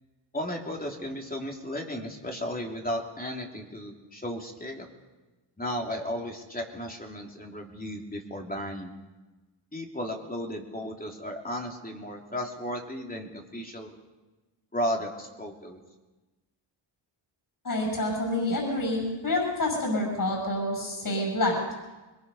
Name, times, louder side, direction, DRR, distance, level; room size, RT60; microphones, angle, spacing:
voice 1, 0.3-4.9 5.6-8.9 9.7-13.9 14.7-15.8, equal, 20° left, 1 dB, 3.2 m, -34 dB
voice 2, 17.6-21.7, left 1 dB, 45° left, 0 dB, 8.0 m, -28 dB
22.5 x 22.0 x 5.7 m, 1.2 s
cardioid pair, 95°, 48 cm